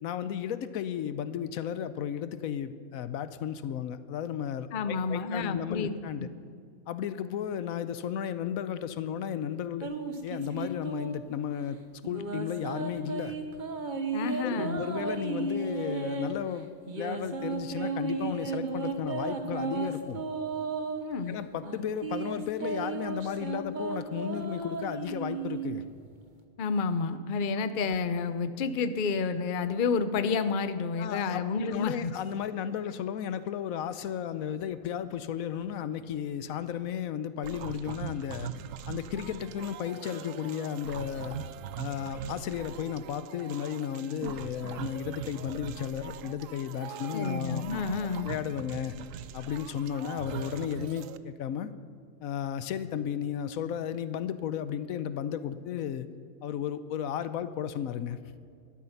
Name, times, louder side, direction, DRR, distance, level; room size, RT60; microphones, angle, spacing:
voice 1, 0.0-6.3 6.9-9.9 10.2-11.8 12.0-13.4 14.4-16.7 17.0-20.2 21.3-25.8 31.0-38.5 38.9-41.4 41.8-47.6 48.0-49.0 49.3-51.7 52.2-56.1 56.4-58.2, left 9 dB, 80° left, 13 dB, 1.1 m, -34 dB
voice 2, 4.7-5.9 6.2-6.3 14.1-14.8 21.0-21.4 26.6-32.1 47.1-48.3, left 5 dB, 45° left, 11 dB, 0.7 m, -30 dB
sound 1, 9.8-11.3 12.0-16.4 16.9-21.0 21.6-25.9, right 4 dB, 35° right, 1.1 m, -34 dB
sound 2, 37.4-51.2, right 10 dB, 70° right, 0.9 m, -41 dB
13.5 x 11.5 x 5.7 m, 2.3 s
omnidirectional pair, 1.5 m